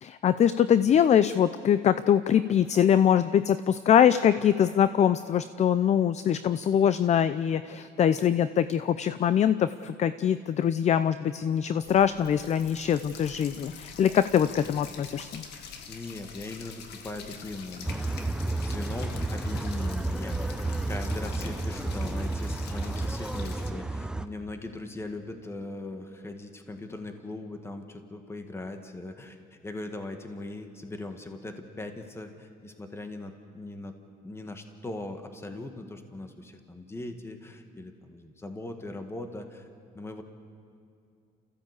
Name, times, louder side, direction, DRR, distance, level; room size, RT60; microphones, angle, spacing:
voice 1, 0.0-15.4, left 9 dB, 40° left, 13 dB, 0.6 m, -23 dB
sound 1, 11.8-23.7, left 6 dB, 80° left, 1.9 m, -45 dB
voice 2, 15.9-34.0 34.2-39.7 40.0-40.2, left 2 dB, 15° left, 6 dB, 1.8 m, -40 dB
sound 2, 17.9-24.3, right 2 dB, 5° right, 0.7 m, -31 dB
29.5 x 15.5 x 8.3 m, 2.5 s
cardioid pair, 110°, 17 cm